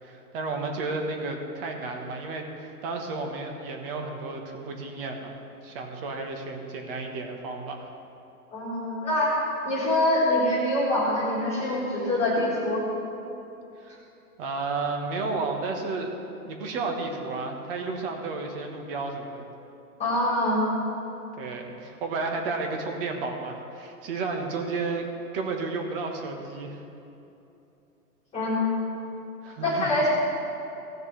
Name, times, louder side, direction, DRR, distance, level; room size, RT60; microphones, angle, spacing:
voice 1, 0.0-7.9 13.8-14.0 14.4-16.1 16.4-19.4 21.4-25.1 25.3-26.8 29.4-29.9, right 3 dB, 35° right, 3 dB, 1.5 m, -32 dB
voice 2, 8.5-9.3 9.6-12.8 20.0-20.7 28.3-28.7 29.6-30.1, left 1 dB, 15° left, -8 dB, 2.2 m, -24 dB
17.0 x 6.6 x 3.4 m, 2.9 s
hypercardioid pair, 145°, 47 cm